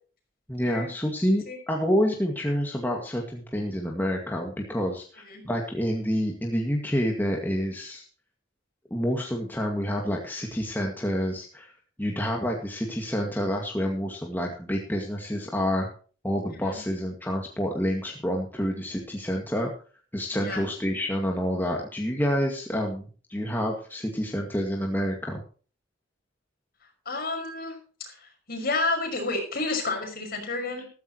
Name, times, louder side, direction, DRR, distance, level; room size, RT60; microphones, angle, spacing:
voice 1, 0.5-8.0 8.9-11.7 12.0-15.9 16.2-19.7 20.1-25.4, equal, 10° left, 0 dB, 2.0 m, -28 dB
voice 2, 27.1-27.7 28.0-30.9, left 3 dB, 50° left, 3 dB, 5.6 m, -30 dB
14.5 x 14.0 x 3.0 m, 0.39 s
head